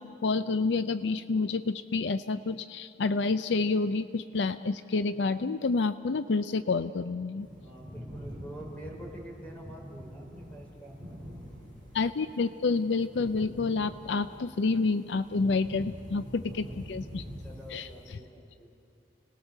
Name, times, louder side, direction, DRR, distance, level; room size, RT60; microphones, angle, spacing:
voice 1, 0.0-7.5 11.9-17.2 17.7-18.2, left 4 dB, 70° left, 12 dB, 0.5 m, -29 dB
sound 1, 7.4-18.2, equal, 25° left, 6.6 m, -45 dB
voice 2, 7.6-11.0 16.5-16.6 17.4-18.7, right 1 dB, 10° left, -2 dB, 5.2 m, -46 dB
29.5 x 19.5 x 6.7 m, 2.5 s
head